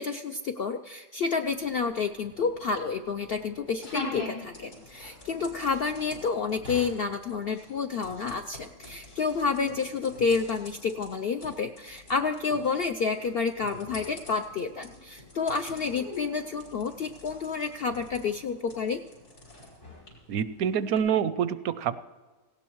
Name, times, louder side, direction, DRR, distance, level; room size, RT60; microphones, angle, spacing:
voice 1, 0.0-19.0, left 5 dB, 65° left, 7 dB, 0.5 m, -29 dB
sound 1, 1.4-21.0, left 2 dB, 85° left, 4.4 m, -45 dB
voice 2, 20.3-22.0, right 8 dB, 80° right, 15 dB, 1.1 m, -26 dB
18.0 x 16.5 x 3.1 m, 1.3 s
omnidirectional pair, 1.6 m